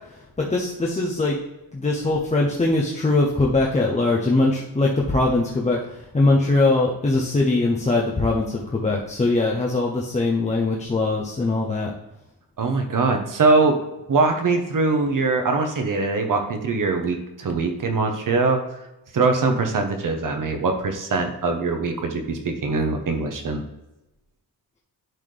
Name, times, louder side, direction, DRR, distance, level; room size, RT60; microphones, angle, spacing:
voice 1, 0.1-1.4 1.7-11.9, left 2 dB, 15° left, -3 dB, 0.7 m, -21 dB
voice 2, 12.6-13.8 14.1-18.6 19.1-23.6, right 3 dB, 50° right, 5 dB, 1.1 m, -22 dB
10.5 x 4.2 x 3.3 m, 0.94 s
wide cardioid pair, 180°, 42 cm